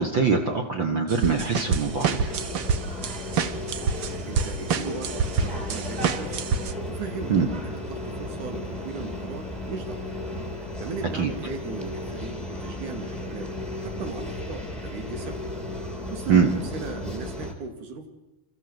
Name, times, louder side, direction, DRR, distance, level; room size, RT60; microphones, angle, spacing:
voice 1, 0.0-2.4 7.3-7.5 11.1-11.3 16.3-16.5, right 5 dB, 45° right, 3 dB, 1.8 m, -23 dB
sound 1, 1.1-6.7, right 6 dB, 65° right, 1.2 m, -27 dB
sound 2, 1.4-17.5, left 1 dB, ahead, 3.1 m, -35 dB
voice 2, 3.9-6.5 6.9-7.4 7.6-10.1 10.5-13.5 13.8-15.4 16.1-18.1, right 4 dB, 80° right, 6 dB, 3.6 m, -37 dB
29.5 x 14.0 x 8.0 m, 1.0 s
omnidirectional pair, 3.5 m